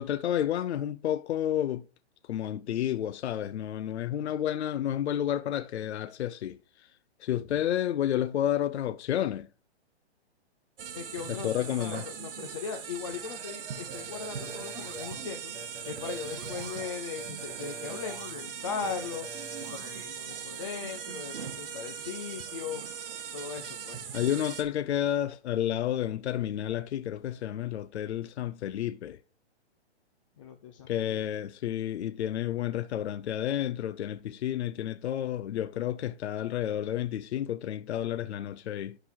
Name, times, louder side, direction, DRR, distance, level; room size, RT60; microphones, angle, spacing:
voice 1, 0.0-1.9 2.3-6.9 7.2-9.5 11.3-12.1 24.1-29.2 30.9-39.0, left 11 dB, 75° left, 0.6 m, -31 dB
sound 1, 10.8-24.6, right 7 dB, 55° right, 1.5 m, -40 dB
voice 2, 10.9-15.5 15.9-19.3 19.6-22.8 23.3-24.0 30.4-31.2, left 6 dB, 30° left, 0.6 m, -39 dB
sound 2, 13.9-15.2 15.5-16.8 17.2-18.4 18.8-20.1, right 2 dB, 10° right, 1.5 m, -44 dB
11.5 x 4.0 x 4.4 m
hypercardioid pair, 165°, 34 cm